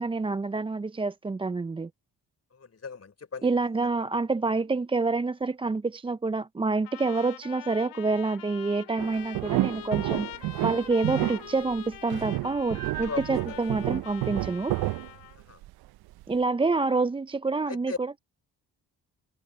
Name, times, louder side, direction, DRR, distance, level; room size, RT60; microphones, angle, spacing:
voice 1, 0.0-1.9 3.4-14.7 16.3-18.2, right 3 dB, 15° right, 0.4 m, -27 dB
voice 2, 2.5-3.5 13.0-13.6 15.4-15.6 17.7-18.0, left 5 dB, 35° left, 3.9 m, -38 dB
Trumpet, 6.8-15.4, left 14 dB, 85° left, 3.0 m, -44 dB
sound 1, 9.0-15.7 16.1-16.2, right 18 dB, 65° right, 0.5 m, -30 dB
supercardioid pair, 60°, 41 cm